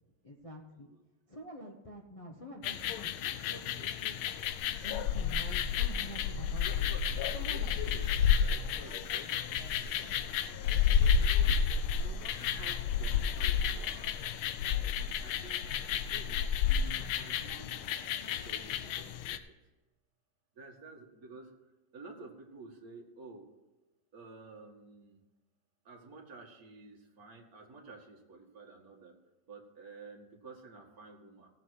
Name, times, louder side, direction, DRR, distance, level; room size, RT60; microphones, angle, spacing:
voice 1, 0.2-0.9 1.3-4.4 4.8-6.9 7.3-7.8 9.9-10.1 10.7-11.2, equal, 25° left, 0 dB, 0.7 m, -48 dB
sound 1, 2.6-19.4, left 7 dB, 90° left, 1.5 m, -31 dB
voice 2, 6.6-10.3 11.0-11.5 11.9-14.1 15.2-17.8 18.3-19.4 20.6-21.5 21.9-23.5 24.1-25.2 25.9-29.1 29.5-31.5, right 1 dB, 45° right, 0 dB, 2.2 m, -51 dB
17.5 x 7.2 x 4.7 m, 1.1 s
omnidirectional pair, 2.2 m